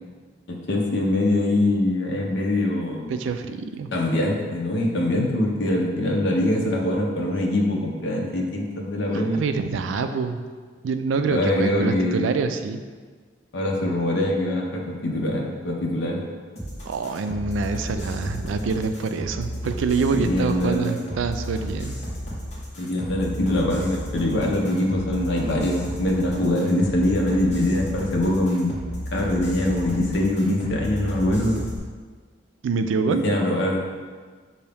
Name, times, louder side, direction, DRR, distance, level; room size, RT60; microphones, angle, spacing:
voice 1, 0.5-3.2 3.9-9.4 11.3-12.2 13.5-16.2 20.1-21.0 22.8-28.7 29.1-31.6 33.1-33.9, left 1 dB, 70° left, -1 dB, 0.7 m, -23 dB
voice 2, 3.1-3.9 9.1-10.4 10.8-12.8 16.9-22.0 32.6-33.2, right 4 dB, 90° right, 9 dB, 0.3 m, -26 dB
sound 1, 16.6-31.8, equal, 35° left, 1.2 m, -33 dB
5.6 x 2.6 x 3.4 m, 1.5 s
head